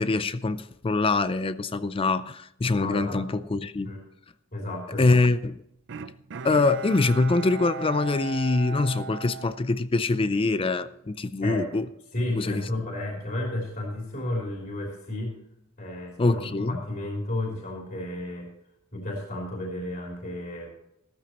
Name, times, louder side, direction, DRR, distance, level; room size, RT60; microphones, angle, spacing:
voice 1, 0.0-3.9 5.0-5.5 6.4-11.8 12.4-12.6 16.2-16.7, left 3 dB, 25° left, 0.4 m, -24 dB
voice 2, 2.7-3.2 3.8-4.0 4.5-5.2 11.4-11.7 12.1-15.3 15.8-18.5 18.9-20.7, left 1 dB, 40° left, 3.3 m, -32 dB
Bowed string instrument, 5.9-10.4 10.8-10.9, right 6 dB, 60° right, 0.5 m, -38 dB
15.0 x 13.5 x 3.0 m
head